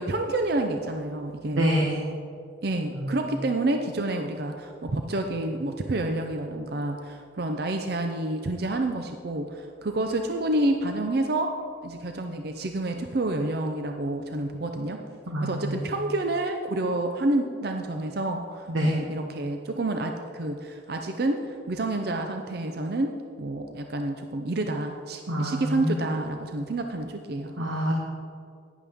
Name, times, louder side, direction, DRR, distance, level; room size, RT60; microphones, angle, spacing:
voice 1, 0.0-1.7 2.6-11.5 11.8-15.0 15.4-27.5, right 2 dB, 55° right, 5 dB, 0.5 m, -29 dB
voice 2, 1.6-2.0 2.9-3.2 15.3-15.9 18.7-19.0 25.3-25.9 27.6-27.9, equal, 85° right, -2 dB, 1.3 m, -26 dB
11.0 x 10.0 x 3.5 m, 2.4 s
head